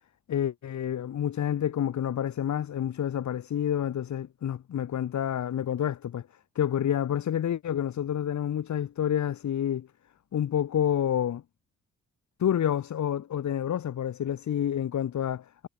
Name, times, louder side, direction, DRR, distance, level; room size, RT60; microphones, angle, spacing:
voice 1, 0.3-6.3 6.5-9.9 10.3-11.4 12.4-15.7, left 10 dB, 70° left, 7.9 m, -28 dB
cardioid pair, 75°, 30 cm